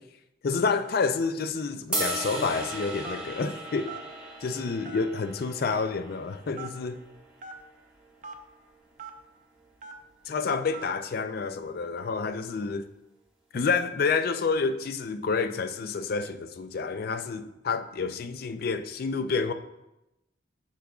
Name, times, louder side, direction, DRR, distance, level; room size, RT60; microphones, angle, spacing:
voice 1, 0.4-3.9 4.4-7.0 10.3-12.9 13.5-19.5, left 4 dB, 50° left, 0.4 m, -29 dB
sound 1, 1.9-8.1, right 2 dB, 5° right, 1.1 m, -37 dB
Telephone, 3.0-3.4 3.9-4.1 4.8-5.2 5.7-5.8 6.6-6.7 7.4-7.5 8.2-8.4 9.0-9.1 9.8-10.0 10.7-10.9, right 3 dB, 40° right, 0.5 m, -40 dB
8.3 x 6.0 x 2.4 m
head